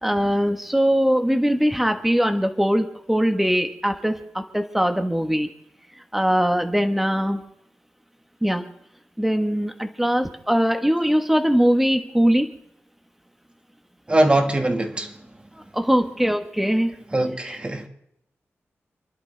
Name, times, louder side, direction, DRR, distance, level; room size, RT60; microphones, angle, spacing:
voice 1, 0.0-5.5 6.1-7.4 8.4-8.6 9.2-12.5 15.7-16.9 17.4-17.6, equal, 5° right, 1.2 m, -21 dB
voice 2, 14.1-15.1 17.1-17.9, right 1 dB, 25° right, 1.7 m, -21 dB
29.0 x 11.5 x 3.3 m
wide cardioid pair, 120°, 5 cm